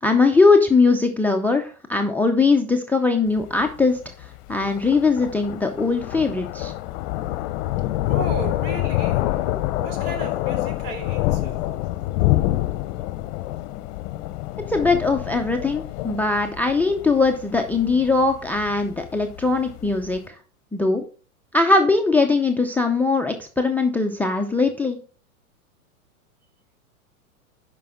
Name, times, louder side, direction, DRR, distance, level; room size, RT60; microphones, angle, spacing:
voice 1, 0.0-6.7 14.7-20.4 20.7-21.0 21.5-25.0, left 3 dB, 5° left, 0.5 m, -20 dB
Thunder, 3.3-20.2, left 16 dB, 45° left, 0.8 m, -27 dB
voice 2, 8.0-9.5 9.8-11.7, right 3 dB, 55° right, 3.3 m, -35 dB
10.0 x 5.4 x 3.6 m
hypercardioid pair, 100°, 44 cm